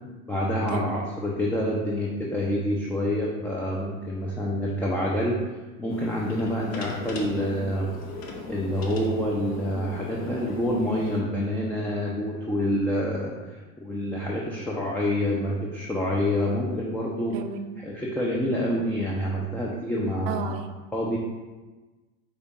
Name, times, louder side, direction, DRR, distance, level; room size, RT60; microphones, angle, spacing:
voice 1, 0.3-5.4 5.8-7.9 8.5-13.3 13.8-17.3 17.8-20.5 20.9-21.2, left 1 dB, 5° left, -4 dB, 0.5 m, -27 dB
sound 1, 5.9-11.2, left 3 dB, 70° left, 0.8 m, -38 dB
voice 2, 17.3-17.8 20.3-20.9, right 7 dB, 55° right, 8 dB, 0.5 m, -33 dB
4.9 x 2.5 x 4.0 m, 1.2 s
hypercardioid pair, 80°, 41 cm